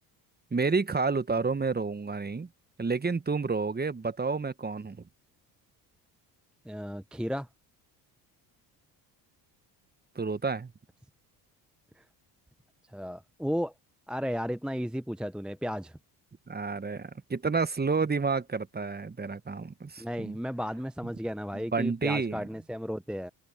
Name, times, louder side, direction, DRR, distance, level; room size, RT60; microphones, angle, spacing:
voice 1, 0.5-2.5 2.8-5.0 10.1-10.7 16.5-20.4 21.5-22.4, right 4 dB, 20° right, 1.3 m, -30 dB
voice 2, 6.6-7.5 12.0-12.1 12.9-13.7 14.1-16.0 20.0-23.3, equal, ahead, 0.8 m, -34 dB
open air
hypercardioid pair, 60°, 49 cm